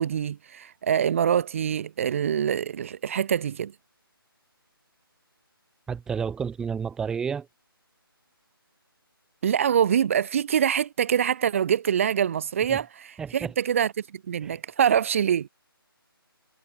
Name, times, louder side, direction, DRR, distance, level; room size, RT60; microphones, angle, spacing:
voice 1, 0.0-3.7 9.4-15.5, right 8 dB, 35° right, 1.7 m, -25 dB
voice 2, 5.9-7.5 12.7-12.8 13.2-13.5 14.4-14.6, right 6 dB, 5° right, 2.0 m, -31 dB
figure-of-eight pair, 160°, 13 cm